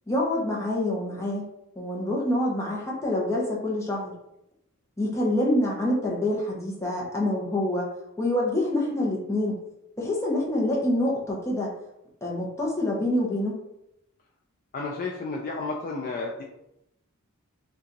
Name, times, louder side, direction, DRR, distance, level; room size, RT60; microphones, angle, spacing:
voice 1, 0.1-1.5 1.8-4.1 5.0-7.9 8.2-9.6 10.0-11.7 12.2-13.6, left 1 dB, 15° left, -3 dB, 0.7 m, -26 dB
voice 2, 14.7-16.4, left 3 dB, 40° left, 0 dB, 0.3 m, -32 dB
2.7 x 2.3 x 3.8 m, 0.82 s
head